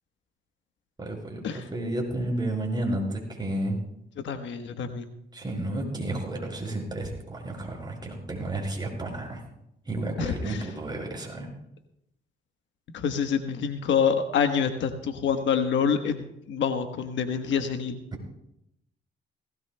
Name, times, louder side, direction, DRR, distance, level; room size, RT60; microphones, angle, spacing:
voice 1, 1.0-3.8 5.3-9.4 9.9-11.5, right 1 dB, 20° right, 0 dB, 5.1 m, -31 dB
voice 2, 4.2-5.1 10.2-10.6 12.9-18.0, left 7 dB, 70° left, 7 dB, 1.2 m, -27 dB
18.5 x 17.5 x 2.2 m, 0.80 s
cardioid pair, 90°, 20 cm